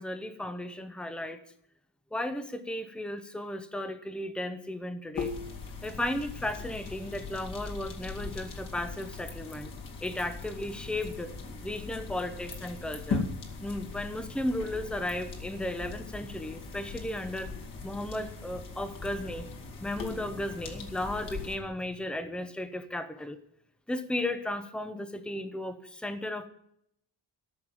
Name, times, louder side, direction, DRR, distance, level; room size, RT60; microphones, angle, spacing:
voice 1, 0.0-1.4 2.1-5.3 5.8-9.7 10.0-11.3 11.6-13.3 13.6-17.5 17.8-19.5 19.8-23.4 23.9-26.5, left 1 dB, ahead, 9 dB, 0.8 m, -35 dB
sound 1, 5.1-21.6, left 4 dB, 45° left, 2.4 m, -39 dB
13.5 x 6.6 x 8.9 m, 0.72 s
cardioid pair, 170°, 44 cm